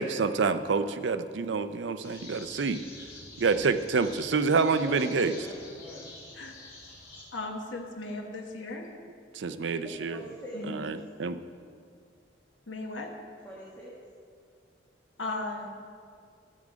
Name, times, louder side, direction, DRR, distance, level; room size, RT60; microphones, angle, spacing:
voice 1, 0.0-2.8 3.4-5.3 9.3-10.2 10.7-11.4, right 4 dB, 70° right, 11 dB, 0.5 m, -27 dB
sound 1, 2.0-7.2, left 2 dB, 55° left, 3.2 m, -47 dB
voice 2, 5.3-6.1 9.7-10.7 13.4-13.9, equal, 10° left, -6 dB, 1.5 m, -43 dB
voice 3, 7.3-8.9 10.5-10.9 12.7-13.1 15.2-15.8, left 2 dB, 90° left, 2 dB, 1.3 m, -36 dB
13.5 x 7.5 x 5.0 m, 2.2 s
head